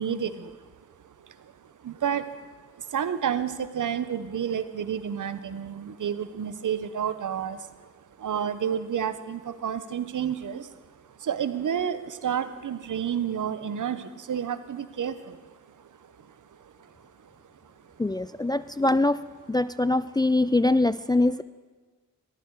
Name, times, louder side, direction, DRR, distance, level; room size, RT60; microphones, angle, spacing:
voice 1, 0.0-7.9 8.2-17.3 17.6-17.7, right 8 dB, 65° right, 12 dB, 0.9 m, -31 dB
voice 2, 18.0-19.2 19.5-21.4, left 2 dB, 15° left, 14 dB, 0.3 m, -23 dB
14.0 x 12.5 x 4.7 m, 1.3 s
supercardioid pair, 40°, 33 cm